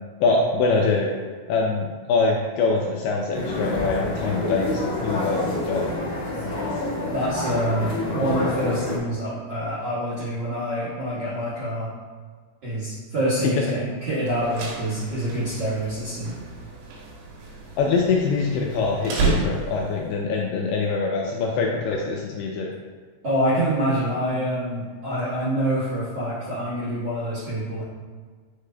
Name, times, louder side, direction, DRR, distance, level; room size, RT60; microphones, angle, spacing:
voice 1, 0.2-1.1 1.5-5.9 17.8-22.7, left 4 dB, 80° left, -1 dB, 2.3 m, -24 dB
sound 1, 3.3-9.0, left 1 dB, 50° left, 1.3 m, -27 dB
voice 2, 7.1-11.9 12.6-16.3 23.2-27.8, equal, 60° right, -11 dB, 1.6 m, -26 dB
sound 2, 14.3-20.0, right 3 dB, 75° right, 3.3 m, -31 dB
8.9 x 5.0 x 2.2 m, 1.6 s
omnidirectional pair, 5.0 m